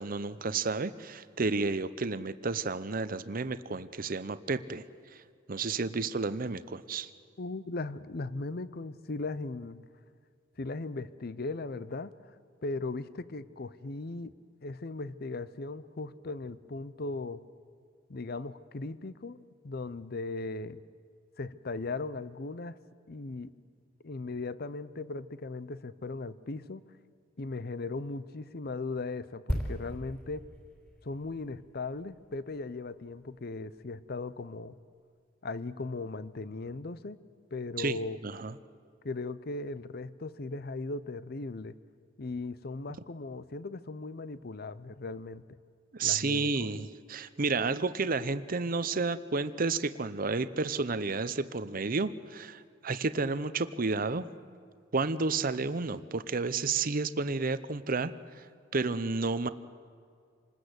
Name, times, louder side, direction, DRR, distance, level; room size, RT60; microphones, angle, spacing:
voice 1, 0.0-4.8 5.1-5.2 5.5-7.1 37.8-38.0 38.2-38.5 45.9-54.3 54.9-58.4 58.7-59.5, right 4 dB, 45° right, 13 dB, 0.7 m, -31 dB
voice 2, 7.4-9.9 10.6-12.1 12.6-14.3 14.6-17.4 18.1-20.8 21.4-22.8 23.1-23.5 24.0-26.8 27.4-30.5 31.0-34.8 35.4-37.2 37.5-38.2 39.0-41.7 42.2-45.4 46.0-46.8, left 3 dB, 50° left, 16 dB, 0.7 m, -38 dB
sound 1, 29.5-33.1 33.4-33.6, equal, 10° left, 4.2 m, -38 dB
26.5 x 20.0 x 8.0 m, 2.2 s
head